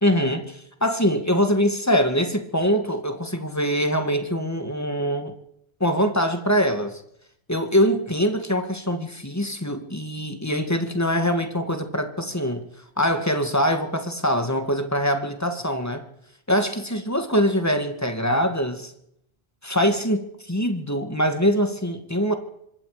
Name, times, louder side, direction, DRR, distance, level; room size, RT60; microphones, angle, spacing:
voice 1, 0.0-5.3 5.8-7.0 7.5-12.7 13.0-16.0 16.5-18.9 19.6-22.4, equal, 15° left, 6 dB, 2.3 m, -23 dB
26.0 x 21.5 x 5.2 m, 0.76 s
omnidirectional pair, 1.1 m